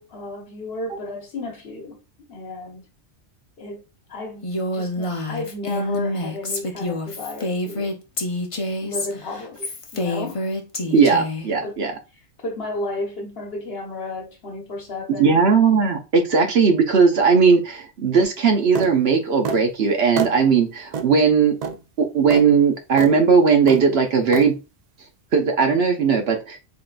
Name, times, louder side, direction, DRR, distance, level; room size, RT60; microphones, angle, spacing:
voice 1, 0.0-2.0 2.3-2.8 3.6-3.8 4.1-8.0 8.8-10.4 10.8-11.0 11.6-11.9 12.4-15.4, left 2 dB, 55° left, 1.1 m, -33 dB
Female speech woman speaking, 4.4-11.5, left 1 dB, 35° left, 0.6 m, -27 dB
voice 2, 10.9-11.9 15.2-21.5 22.0-24.6 25.3-26.6, right 5 dB, 60° right, 0.9 m, -18 dB
sound 1, 18.8-18.9 19.4-19.6 20.2-20.4 20.9-21.1 21.6-21.8 22.3-22.4 23.0-23.1 23.7-23.9 24.3-24.5, right 6 dB, 80° right, 0.3 m, -26 dB
3.8 x 3.6 x 2.5 m
omnidirectional pair, 1.3 m